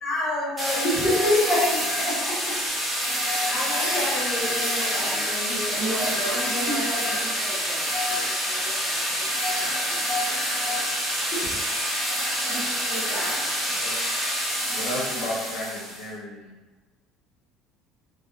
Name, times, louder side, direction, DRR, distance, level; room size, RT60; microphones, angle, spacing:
voice 1, 0.0-2.7 3.5-6.8 11.3-11.5 13.0-13.1, left 1 dB, 25° left, -6 dB, 0.8 m, -28 dB
sound 1, 0.6-16.0, equal, 10° right, 0.7 m, -27 dB
voice 2, 5.8-10.0 10.8-11.2 11.7-11.8 12.1-13.7, right 2 dB, 70° right, -10 dB, 0.7 m, -37 dB
voice 3, 14.7-16.5, left 1 dB, 65° left, -3 dB, 0.7 m, -33 dB
2.5 x 2.2 x 2.3 m, 1.2 s
cardioid pair, 150°, 0 cm